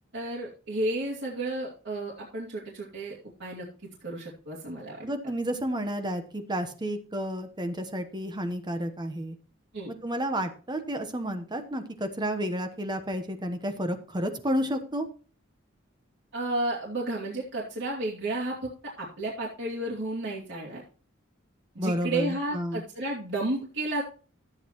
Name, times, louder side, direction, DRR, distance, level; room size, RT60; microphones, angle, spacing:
voice 1, 0.1-3.7 4.0-5.1 9.7-9.9 16.3-18.7 19.0-20.8 21.7-24.0, right 2 dB, 65° right, -5 dB, 2.7 m, -32 dB
voice 2, 5.0-9.4 9.9-15.1 21.8-22.8, equal, 20° right, 7 dB, 1.1 m, -31 dB
13.5 x 8.4 x 3.0 m, 0.39 s
head